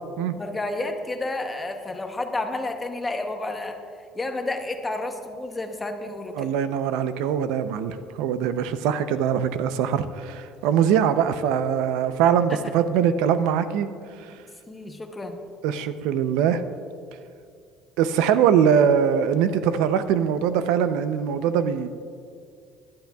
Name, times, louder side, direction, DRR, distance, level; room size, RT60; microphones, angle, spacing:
voice 1, 0.3-3.8 4.1-6.5 12.5-12.6 14.7-15.4, left 2 dB, 10° left, 5 dB, 0.8 m, -30 dB
voice 2, 6.4-13.9 15.6-16.6 18.0-21.9, right 8 dB, 85° right, 11 dB, 0.5 m, -22 dB
18.5 x 11.5 x 2.3 m, 2.2 s
cardioid pair, 170°, 0 cm